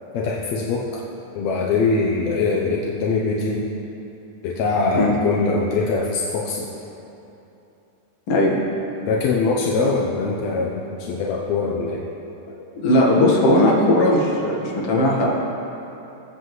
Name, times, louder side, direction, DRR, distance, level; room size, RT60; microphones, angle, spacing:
voice 1, 0.1-1.0 1.3-3.6 4.4-6.7 9.1-12.0, left 4 dB, 75° left, -2 dB, 1.6 m, -22 dB
voice 2, 12.8-15.3, left 1 dB, 50° left, -3 dB, 2.1 m, -17 dB
21.0 x 8.1 x 3.1 m, 3.0 s
omnidirectional pair, 4.0 m